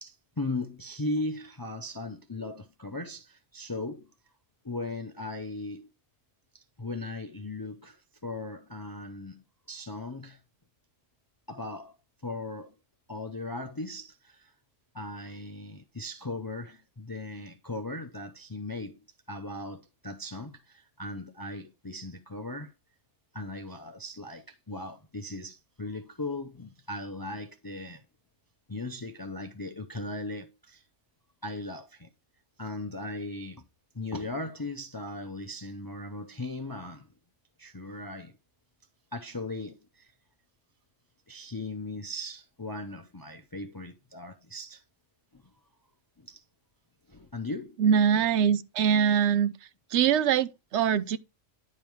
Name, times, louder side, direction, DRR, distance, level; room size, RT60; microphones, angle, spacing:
voice 1, 0.0-4.1 4.6-5.9 6.5-10.4 11.5-11.9 12.2-12.7 13.1-14.5 14.9-22.7 23.3-28.0 28.7-30.8 31.4-32.1 32.6-33.6 33.9-37.1 37.6-38.3 39.1-40.1 41.3-44.8 45.3-45.4 46.2-46.4 47.1-47.8, left 2 dB, 30° left, 0.4 m, -38 dB
voice 2, 47.8-49.5 49.9-51.2, right 8 dB, 70° right, 0.8 m, -23 dB
10.5 x 3.5 x 4.6 m
omnidirectional pair, 1.3 m